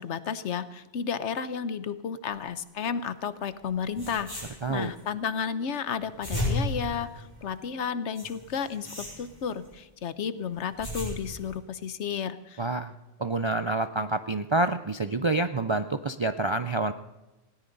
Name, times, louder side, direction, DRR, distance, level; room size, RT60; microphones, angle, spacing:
voice 1, 0.0-12.7, left 7 dB, 75° left, 14 dB, 1.1 m, -32 dB
sound 1, 3.6-3.7 3.9-5.0 5.9-7.6 8.1-9.7 10.5-11.5, left 1 dB, 15° left, 6.8 m, -34 dB
voice 2, 12.6-12.9 13.2-16.9, right 2 dB, 45° right, 9 dB, 0.3 m, -27 dB
19.5 x 17.0 x 4.0 m, 1.1 s
omnidirectional pair, 1.2 m